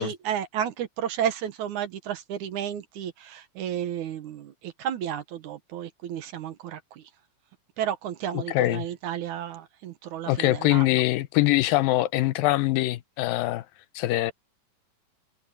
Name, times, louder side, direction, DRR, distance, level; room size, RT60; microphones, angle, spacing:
voice 1, 0.0-7.0 7.8-10.9, right 9 dB, 65° right, 2.4 m, -32 dB
voice 2, 8.3-8.9 10.3-13.6 14.0-14.3, left 16 dB, 85° left, 2.5 m, -23 dB
omnidirectional pair, 4.0 m